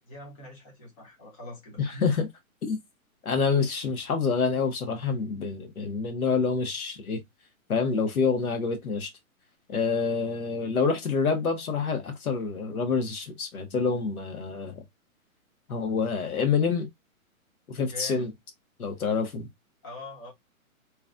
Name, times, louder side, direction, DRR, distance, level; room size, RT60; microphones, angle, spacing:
voice 1, 0.1-2.1 17.8-18.3 19.8-20.3, left 2 dB, 25° left, 1.2 m, -43 dB
voice 2, 1.8-2.3 2.6-2.8 3.2-7.2 7.7-9.1 9.7-14.8 15.7-16.9 17.7-18.3 18.8-19.5, left 5 dB, 80° left, 1.2 m, -27 dB
3.0 x 2.5 x 2.4 m
hypercardioid pair, 165°, 43 cm